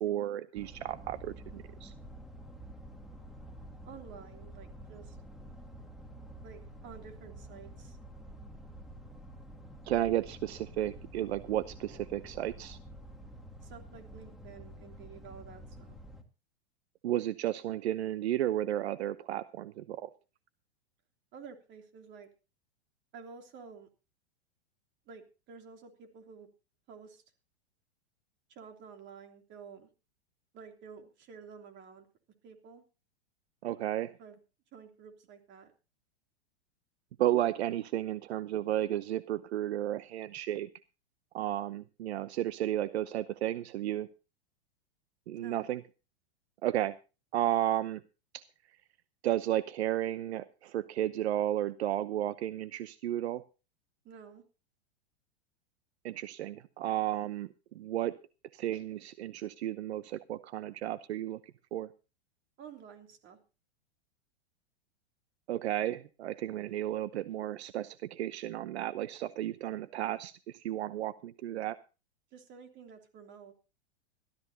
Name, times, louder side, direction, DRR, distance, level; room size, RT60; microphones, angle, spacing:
voice 1, 0.0-1.9 9.9-12.8 17.0-20.1 33.6-34.1 37.2-40.7 41.3-44.1 45.3-45.8 46.6-46.9 47.3-48.0 49.2-53.4 56.0-57.5 57.7-58.1 58.5-61.4 61.7-61.9 65.5-71.8, right 13 dB, 75° right, 14 dB, 0.9 m, -33 dB
sound 1, 0.5-16.2, right 1 dB, ahead, 1.9 m, -49 dB
voice 2, 3.8-5.2 6.4-8.0 13.6-16.0 21.3-22.3 23.1-23.9 25.1-26.5 26.9-27.2 28.5-29.9 30.5-32.1 32.4-32.8 34.2-34.4 34.7-35.7 45.4-45.7 54.0-54.4 62.6-63.4 72.3-73.5, right 6 dB, 35° right, 4 dB, 3.1 m, -51 dB
19.0 x 13.5 x 2.9 m, 0.32 s
hypercardioid pair, 130°, 33 cm